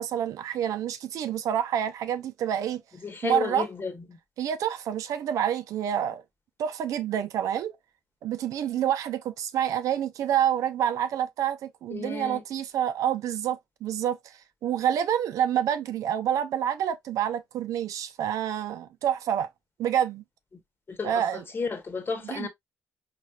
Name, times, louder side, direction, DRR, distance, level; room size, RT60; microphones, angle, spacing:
voice 1, 0.0-2.8 3.2-3.7 4.4-6.2 6.6-7.7 8.2-14.2 14.6-19.5 19.8-20.2 21.0-21.4 22.2-22.5, right 10 dB, 75° right, 0.6 m, -28 dB
voice 2, 3.0-4.0 11.9-12.4 20.9-22.5, left 4 dB, 40° left, 1.2 m, -32 dB
4.2 x 3.1 x 2.3 m
supercardioid pair, 60°, 6 cm